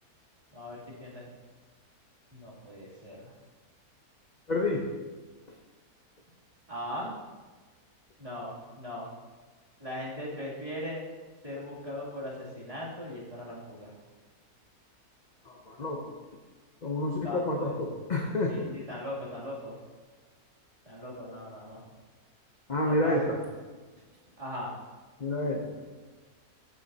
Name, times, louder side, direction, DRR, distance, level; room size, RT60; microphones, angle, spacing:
voice 1, 0.5-1.3 2.3-3.3 6.7-7.1 8.2-9.1 9.8-11.0 11.4-14.0 17.2-17.8 18.5-19.8 20.8-21.8 22.8-23.2 24.4-24.8, left 1 dB, 20° right, -8 dB, 2.8 m, -39 dB
voice 2, 4.5-4.9 15.5-16.1 16.8-18.7 22.7-23.4 25.2-25.8, left 1 dB, 40° left, 0 dB, 0.7 m, -29 dB
14.5 x 7.4 x 2.8 m, 1.4 s
omnidirectional pair, 1.6 m